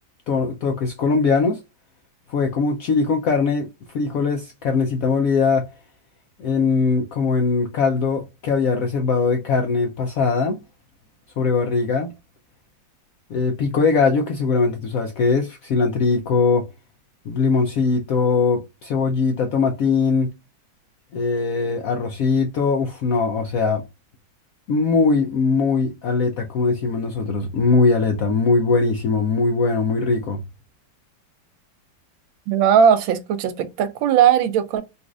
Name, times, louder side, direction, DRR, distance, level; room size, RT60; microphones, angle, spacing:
voice 1, 0.3-1.6 2.3-3.7 3.9-5.7 6.4-10.6 11.4-12.1 13.3-16.7 17.3-20.3 21.1-23.8 24.7-30.4, left 4 dB, 85° left, 0.7 m, -21 dB
voice 2, 32.5-34.8, right 8 dB, 85° right, 1.4 m, -18 dB
4.1 x 2.4 x 2.3 m
omnidirectional pair, 2.1 m